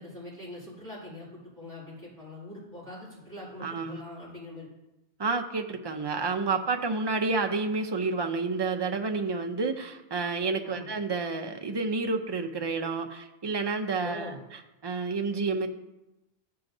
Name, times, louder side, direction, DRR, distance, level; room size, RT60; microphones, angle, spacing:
voice 1, 0.0-4.7 10.6-10.9 14.0-14.4, left 1 dB, 15° left, -8 dB, 2.3 m, -43 dB
voice 2, 3.6-4.0 5.2-14.3 14.8-15.7, right 4 dB, 35° right, 5 dB, 0.4 m, -29 dB
13.0 x 5.7 x 2.6 m, 0.97 s
omnidirectional pair, 1.1 m